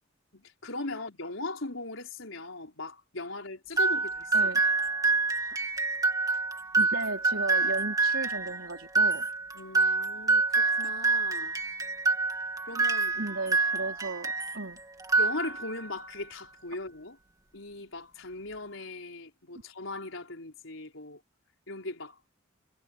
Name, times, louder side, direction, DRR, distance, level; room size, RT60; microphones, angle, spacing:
voice 1, 0.3-4.5 9.5-11.6 12.7-13.2 15.2-17.2 17.5-21.2 21.7-22.2, left 2 dB, 90° left, 4.2 m, -39 dB
sound 1, 3.8-14.6 15.0-15.9, right 3 dB, 20° right, 2.3 m, -27 dB
voice 2, 4.3-4.6 6.8-9.3 13.1-14.8, right 3 dB, 80° right, 4.2 m, -35 dB
head